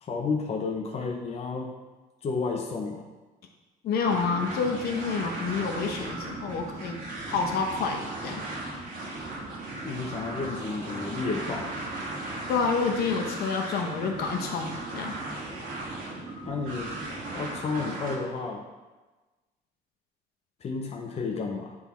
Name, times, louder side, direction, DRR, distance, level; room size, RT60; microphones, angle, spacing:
voice 1, 0.0-1.7 2.2-3.1 9.8-11.8 16.4-16.9 17.3-18.6 20.6-21.8, left 4 dB, 40° left, 1 dB, 0.8 m, -31 dB
voice 2, 3.8-7.0 7.3-8.4 12.5-15.2, left 5 dB, 65° left, 2 dB, 1.0 m, -28 dB
sound 1, 4.0-18.2, right 2 dB, 55° right, 1.7 m, -36 dB
8.1 x 3.6 x 4.2 m, 1.2 s
cardioid pair, 110°, 17 cm